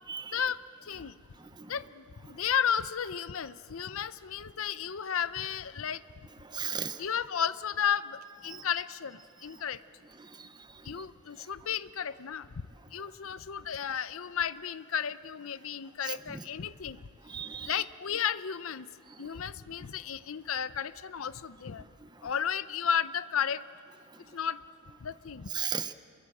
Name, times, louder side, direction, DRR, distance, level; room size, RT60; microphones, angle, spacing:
voice 1, 0.3-1.2 1.7-6.0 7.0-9.8 10.8-12.5 12.9-17.0 17.6-18.9 19.2-21.8 22.2-23.6 24.3-24.6 25.0-25.5, left 8 dB, 65° left, 15 dB, 0.6 m, -33 dB
voice 2, 6.5-7.0 8.5-8.6 10.4-10.5 16.1-16.4 17.3-17.8 25.5-25.9, right 7 dB, 20° right, 11 dB, 0.7 m, -35 dB
27.5 x 22.5 x 7.9 m, 2.5 s
head